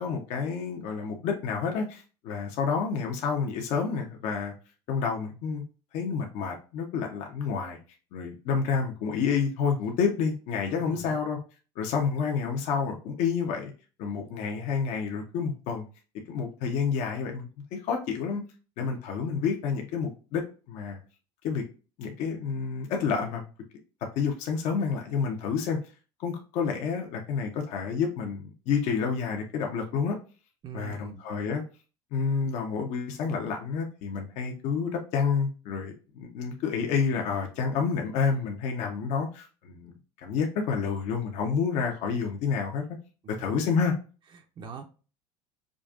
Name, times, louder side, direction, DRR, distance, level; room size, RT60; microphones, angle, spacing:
voice 1, 0.0-4.5 4.9-5.6 5.9-7.8 8.1-11.4 11.8-13.7 14.0-15.9 16.3-18.4 18.8-21.0 21.4-21.6 22.0-23.5 24.2-25.8 26.2-30.2 30.7-31.6 32.1-42.8 43.4-43.9, left 6 dB, 60° left, 2 dB, 0.9 m, -29 dB
voice 2, 10.7-11.2 30.6-31.2 43.2-43.5 44.3-44.9, right 7 dB, 35° right, 4 dB, 0.6 m, -42 dB
5.0 x 2.5 x 2.4 m, 0.35 s
supercardioid pair, 105°, 13 cm